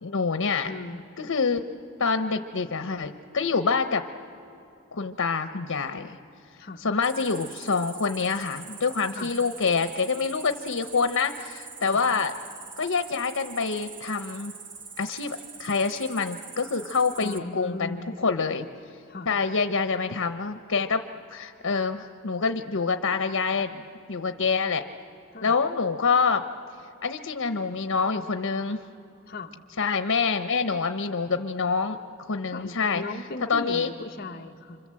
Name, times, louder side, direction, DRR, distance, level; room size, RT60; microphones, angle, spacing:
voice 1, 0.0-0.7 1.2-1.6 2.0-4.0 4.9-6.2 6.8-12.3 12.8-14.5 15.0-18.7 19.3-21.0 21.3-23.8 24.1-24.8 25.4-26.4 27.0-28.8 29.8-33.0 33.5-33.9, left 5 dB, 80° left, 9 dB, 0.9 m, -26 dB
voice 2, 0.6-1.0 6.6-6.8 9.2-9.3 11.9-12.0 17.2-18.2 19.1-19.3 25.3-25.5 29.3-29.6 32.5-34.8, left 2 dB, 45° left, 3 dB, 1.1 m, -37 dB
Cricket, 7.0-17.4, right 5 dB, 55° right, 1.5 m, -43 dB
28.0 x 26.0 x 7.7 m, 2.7 s
head